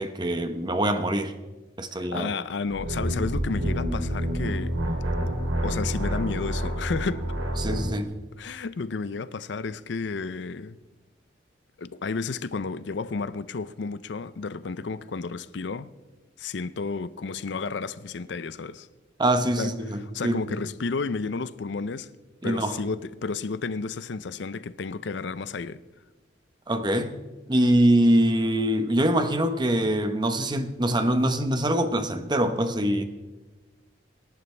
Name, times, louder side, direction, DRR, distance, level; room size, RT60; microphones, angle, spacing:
voice 1, 0.0-1.3 1.8-2.3 7.6-8.1 19.2-20.6 22.4-22.8 26.7-27.1 27.5-33.0, right 1 dB, 25° right, 0.9 m, -24 dB
voice 2, 1.9-4.8 5.6-7.2 8.4-10.8 11.8-15.9 16.4-18.9 19.6-19.7 20.1-22.1 22.4-25.8, left 4 dB, 65° left, 0.5 m, -32 dB
sound 1, 2.7-7.9, equal, 90° right, 3.1 m, -28 dB
26.5 x 11.0 x 3.4 m
head